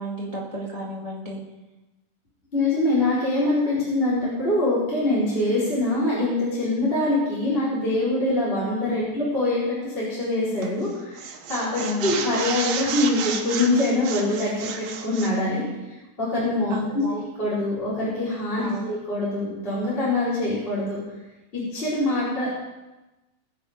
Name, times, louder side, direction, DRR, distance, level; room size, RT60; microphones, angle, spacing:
voice 1, 0.0-1.4 11.8-12.2 16.7-17.2 18.6-18.9, left 1 dB, 75° left, -4 dB, 0.3 m, -32 dB
voice 2, 2.5-11.2 11.5-15.6 16.2-17.0 17.4-21.0 21.5-22.6, left 2 dB, 15° left, -9 dB, 4.4 m, -24 dB
sound 1, 10.6-10.9 11.2-15.4, right 6 dB, 70° right, 2.9 m, -31 dB
21.0 x 8.4 x 5.2 m, 1.1 s
omnidirectional pair, 4.7 m